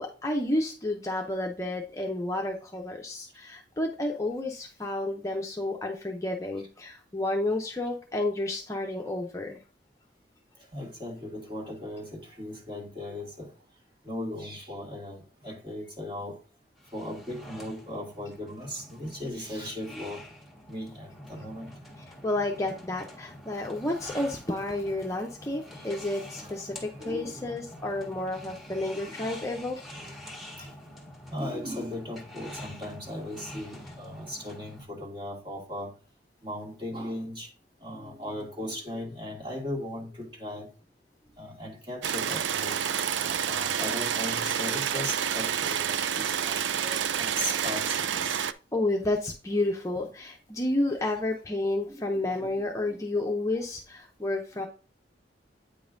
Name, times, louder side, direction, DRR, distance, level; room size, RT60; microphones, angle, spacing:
voice 1, 0.0-9.6 22.2-29.8 30.6-30.7 48.7-54.7, left 2 dB, 15° left, 1 dB, 0.6 m, -31 dB
voice 2, 10.7-13.5 14.1-16.3 16.9-20.2 20.7-21.7 26.4-26.5 27.0-27.5 29.0-29.2 30.0-30.1 31.3-35.9 36.4-37.5 37.8-40.7 41.4-42.8 43.2-48.3 51.0-51.1 51.9-52.5 52.9-53.0 54.6-54.7, left 1 dB, 30° right, -1 dB, 1.9 m, -37 dB
sound 1, 16.8-34.8, left 1 dB, ahead, 1.4 m, -46 dB
sound 2, 42.0-48.5, right 8 dB, 80° right, 0.4 m, -29 dB
8.7 x 5.3 x 2.6 m, 0.36 s
head